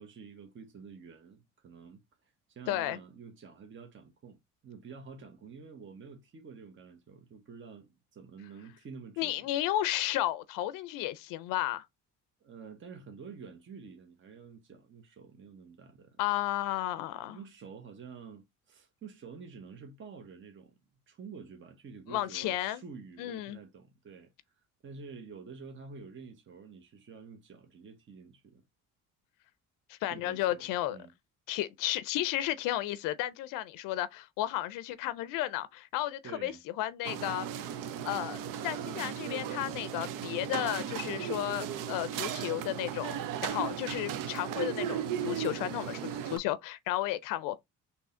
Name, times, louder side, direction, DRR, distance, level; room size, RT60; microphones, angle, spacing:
voice 1, 0.0-4.4 4.6-9.5 12.4-16.2 17.0-20.8 21.1-28.6 30.1-31.1 36.2-36.6, right 5 dB, 40° right, 0.9 m, -49 dB
voice 2, 2.7-3.0 9.2-11.9 16.2-17.4 22.1-22.8 23.2-23.6 29.9-31.0 31.5-37.5 38.0-43.2 43.4-46.0 46.3-47.6, left 14 dB, 90° left, 0.5 m, -33 dB
sound 1, 37.0-46.4, right 9 dB, 80° right, 0.6 m, -36 dB
3.6 x 2.8 x 4.2 m
cardioid pair, 95°, 32 cm